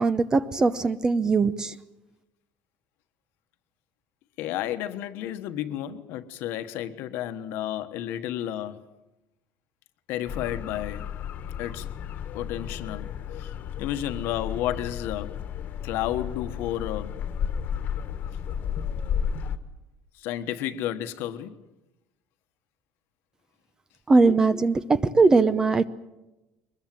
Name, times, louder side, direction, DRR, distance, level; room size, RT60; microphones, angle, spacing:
voice 1, 0.0-1.8 24.1-25.9, right 3 dB, 15° right, 0.7 m, -20 dB
voice 2, 4.4-8.9 10.1-11.1 11.6-11.9 12.3-13.1 13.4-15.4 15.8-17.2 20.2-21.6, left 12 dB, 65° left, 1.3 m, -32 dB
sound 1, 10.3-19.6, left 8 dB, 45° left, 1.5 m, -33 dB
23.0 x 21.0 x 7.6 m
cardioid pair, 150°, 4 cm